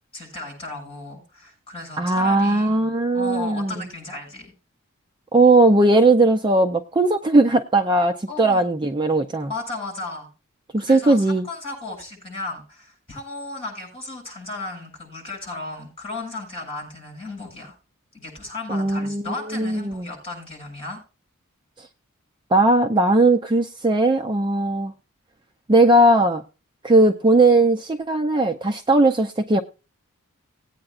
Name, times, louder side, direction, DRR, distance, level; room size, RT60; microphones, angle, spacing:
voice 1, 0.1-4.5 8.3-8.6 9.5-10.3 10.8-17.8 18.1-21.0, left 2 dB, 25° left, 0 dB, 7.3 m, -35 dB
voice 2, 2.0-3.9 5.3-9.5 10.7-11.5 18.7-20.1 22.5-24.9 25.7-26.4 26.8-29.6, right 2 dB, 20° right, 6 dB, 0.5 m, -18 dB
19.0 x 8.7 x 2.4 m, 0.32 s
head